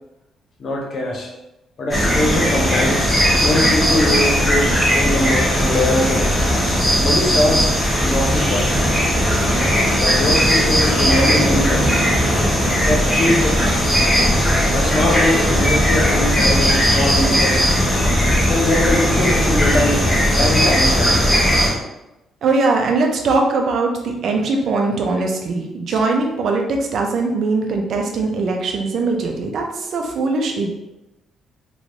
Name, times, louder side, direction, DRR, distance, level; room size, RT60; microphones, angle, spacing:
voice 1, 0.6-1.3 1.8-3.1 3.4-6.3 6.6-7.7 8.0-8.8 10.0-12.0 12.8-13.8 14.7-17.7 18.5-20.1 20.4-21.2 25.9-26.0, left 1 dB, 50° left, 0 dB, 0.7 m, -22 dB
canggu dawn, 1.9-21.7, equal, 10° left, 1.1 m, -17 dB
sound 1, 6.1-6.3 6.5-7.4 7.7-7.8 8.1-8.2 8.5-8.7 8.9-9.1 9.3-9.5 9.8-9.9 10.2-10.3 10.6-11.1 11.4-11.6 11.8-12.0 12.2-12.4 12.7-12.8 13.1-13.2 14.3-14.4 14.7-15.3 15.6-16.1 16.4-16.9 17.2-17.3, left 5 dB, 75° left, 0.4 m, -34 dB
voice 2, 22.4-30.7, right 3 dB, 65° right, 2 dB, 0.6 m, -21 dB
3.1 x 3.0 x 2.6 m, 0.94 s
cardioid pair, 90°, 0 cm